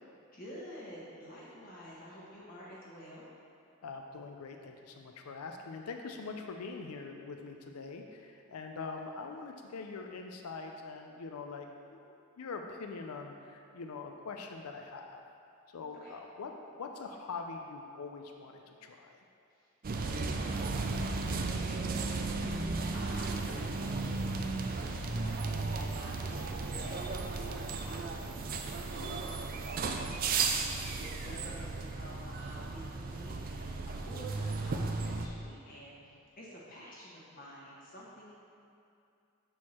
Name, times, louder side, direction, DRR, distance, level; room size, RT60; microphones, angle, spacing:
voice 1, 0.3-3.3 16.0-16.2 19.5-38.4, equal, 40° left, -6 dB, 1.2 m, -50 dB
voice 2, 3.8-15.2 15.7-16.5 16.8-19.1 31.3-31.4, left 4 dB, 85° left, 3 dB, 0.4 m, -43 dB
sound 1, 19.8-35.3, right 3 dB, 40° right, 0.4 m, -35 dB
6.3 x 4.6 x 4.3 m, 2.6 s
head